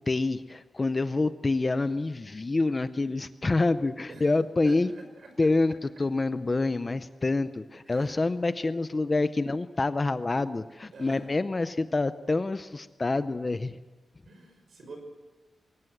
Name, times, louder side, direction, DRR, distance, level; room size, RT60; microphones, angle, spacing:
voice 1, 0.1-4.9 5.4-13.8, left 3 dB, 20° left, 12 dB, 0.6 m, -27 dB
voice 2, 4.6-5.3 7.9-8.2 8.5-9.3 10.9-11.3 14.3-15.0, right 2 dB, 55° right, 4 dB, 5.7 m, -48 dB
21.5 x 19.0 x 7.9 m, 1.3 s
wide cardioid pair, 175°, 0 cm